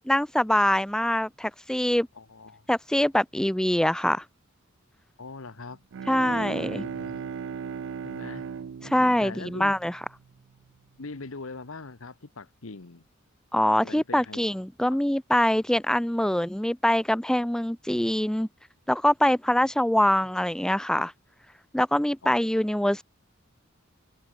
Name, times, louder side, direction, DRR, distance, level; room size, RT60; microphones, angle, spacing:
voice 1, 0.1-2.1 2.7-4.2 6.1-6.8 8.8-9.9 13.5-18.5 18.9-21.1 21.7-23.0, left 1 dB, 5° left, 0.4 m, -24 dB
voice 2, 2.2-2.6 5.2-5.8 6.2-7.3 8.0-8.5 8.8-9.7 11.0-13.1 13.8-14.5 14.9-15.0 22.2-22.6, left 3 dB, 80° left, 1.2 m, -42 dB
Bowed string instrument, 5.7-10.4, right 6 dB, 65° right, 0.4 m, -37 dB
open air
head